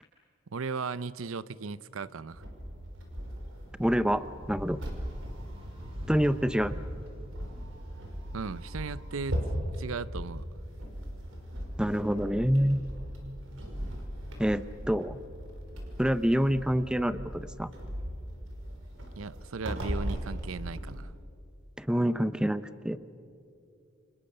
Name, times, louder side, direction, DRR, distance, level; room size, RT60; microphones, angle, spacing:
voice 1, 0.5-2.4 8.3-9.4 9.7-10.5 19.2-21.1, right 4 dB, 85° right, 0.6 m, -37 dB
sound 1, 2.3-10.4 10.7-11.9, equal, 30° right, 3.1 m, -53 dB
sound 2, 2.3-21.0, equal, 70° right, 5.2 m, -38 dB
voice 2, 3.8-4.8 6.1-6.8 11.8-12.8 14.4-15.2 16.0-17.7 21.8-23.0, equal, 5° right, 0.6 m, -27 dB
29.5 x 27.5 x 6.7 m
head